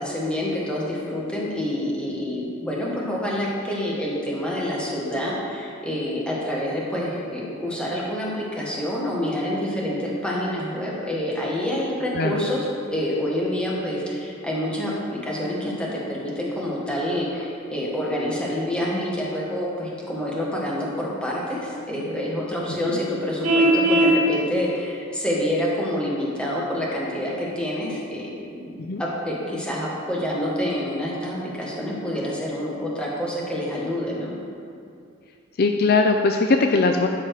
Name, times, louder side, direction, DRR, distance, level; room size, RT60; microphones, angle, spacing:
voice 1, 0.0-28.7 29.0-34.3, left 1 dB, 5° left, -5 dB, 1.5 m, -27 dB
Vehicle horn car horn honking, 23.4-24.2, right 1 dB, 85° right, 1.3 m, -17 dB
voice 2, 35.6-37.1, left 3 dB, 50° left, 4 dB, 0.4 m, -20 dB
12.5 x 4.4 x 4.8 m, 2.4 s
head